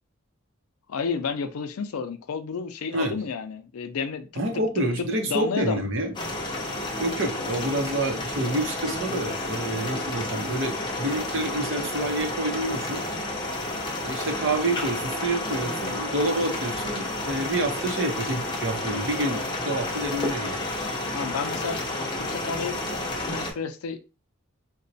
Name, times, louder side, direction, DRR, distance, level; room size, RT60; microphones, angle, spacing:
voice 1, 0.9-4.4 4.8-5.8 21.1-21.8 22.2-22.8 23.3-24.1, left 5 dB, 85° left, 0.4 m, -31 dB
voice 2, 4.4-6.1 7.0-13.0 14.0-20.7, right 1 dB, 60° right, 0.7 m, -28 dB
sound 1, 6.1-23.5, left 1 dB, 20° left, 0.5 m, -31 dB
4.0 x 2.2 x 2.6 m
head